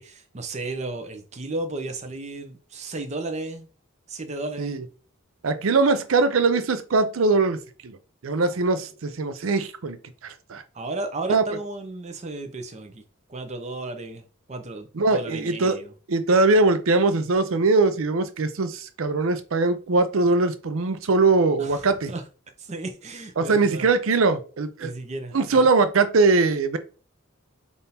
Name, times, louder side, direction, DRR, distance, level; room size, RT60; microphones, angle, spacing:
voice 1, 0.0-3.7 4.1-4.8 10.7-13.0 13.3-15.9 21.6-22.2 22.6-23.9 24.8-25.6, right 2 dB, 35° right, 0.6 m, -34 dB
voice 2, 5.4-8.0 8.2-10.0 10.2-10.6 11.3-11.4 14.9-15.8 16.1-22.1 23.4-24.9 25.3-26.8, right 3 dB, 75° right, 0.5 m, -21 dB
3.5 x 2.6 x 4.2 m
head